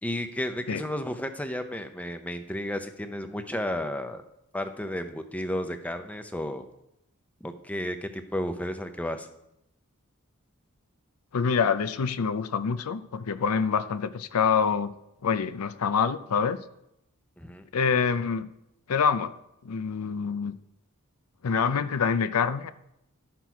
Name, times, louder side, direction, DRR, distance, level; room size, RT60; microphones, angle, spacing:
voice 1, 0.0-4.2 4.5-6.6 7.4-9.3 17.4-17.6, left 1 dB, 5° left, 8 dB, 0.6 m, -33 dB
voice 2, 11.3-14.9 15.2-16.6 17.7-18.5 18.9-19.3 19.6-20.5 21.4-22.7, left 6 dB, 85° left, 12 dB, 0.5 m, -26 dB
12.0 x 6.0 x 4.6 m, 0.82 s
head